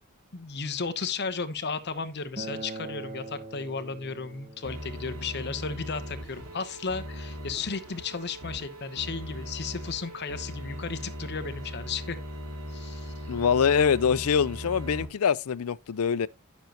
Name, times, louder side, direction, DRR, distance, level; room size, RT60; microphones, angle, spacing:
voice 1, 0.3-12.2 12.7-13.1, left 5 dB, 50° left, 0.9 m, -34 dB
Acoustic guitar, 2.4-7.6, right 2 dB, 30° right, 1.5 m, -44 dB
sound 1, 4.6-15.0, equal, 85° right, 2.7 m, -39 dB
voice 2, 13.3-16.3, left 7 dB, 75° left, 0.5 m, -24 dB
10.5 x 7.2 x 2.9 m
head